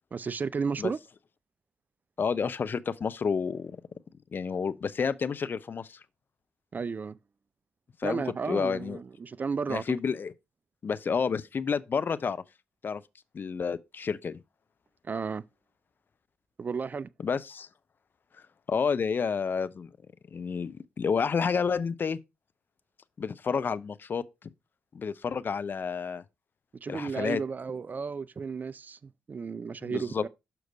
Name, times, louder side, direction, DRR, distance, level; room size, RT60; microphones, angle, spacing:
voice 1, 0.1-1.0 6.7-7.2 8.0-9.8 15.0-15.4 16.6-17.1 26.8-30.3, right 5 dB, 35° right, 0.3 m, -33 dB
voice 2, 2.2-3.8 4.3-6.0 8.0-9.0 9.7-10.3 10.8-12.4 12.8-13.0 13.3-14.4 17.2-17.7 18.7-19.9 20.3-22.2 23.2-24.2 24.9-26.2 26.9-27.4 29.8-30.2, left 6 dB, 40° left, 0.5 m, -30 dB
6.4 x 4.6 x 4.9 m
figure-of-eight pair, 40°, 5 cm